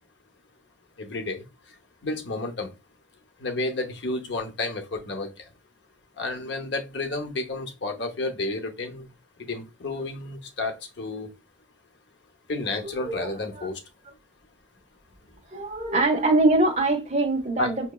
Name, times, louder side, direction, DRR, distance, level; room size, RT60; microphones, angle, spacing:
voice 1, 1.0-1.4 2.0-2.7 3.4-5.3 6.2-9.1 9.5-11.3 12.5-13.8 17.6-17.7, left 2 dB, 60° left, 0.7 m, -31 dB
voice 2, 12.8-13.7 15.5-17.9, right 2 dB, 35° right, 1.0 m, -23 dB
5.8 x 2.8 x 2.2 m
head